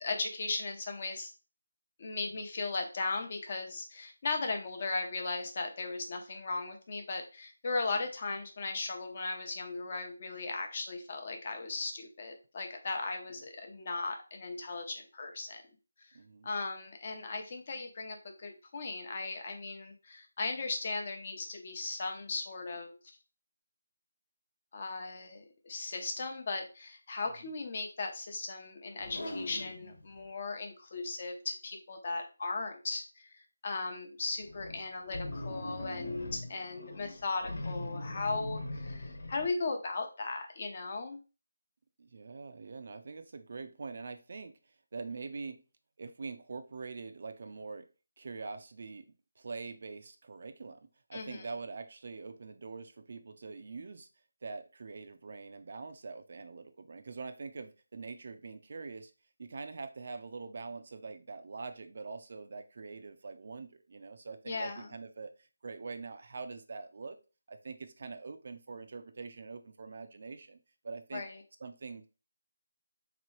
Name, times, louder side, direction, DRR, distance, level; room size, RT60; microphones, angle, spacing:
voice 1, 0.0-1.3 2.0-15.6 16.4-23.0 24.7-33.3 33.6-41.2 51.1-51.5 64.5-64.9 71.1-71.4, left 3 dB, 40° left, 0.7 m, -37 dB
voice 2, 16.1-16.5 27.4-27.5 36.4-36.6 42.0-44.6 44.9-45.6 46.0-47.8 48.2-54.1 54.4-59.1 59.4-67.2 67.5-70.6 70.8-71.2 71.6-72.1, right 4 dB, 50° right, 0.4 m, -44 dB
sound 1, 29.0-30.2 34.4-39.5, left 2 dB, 70° left, 1.2 m, -41 dB
3.5 x 3.0 x 3.1 m
figure-of-eight pair, 165°, 0 cm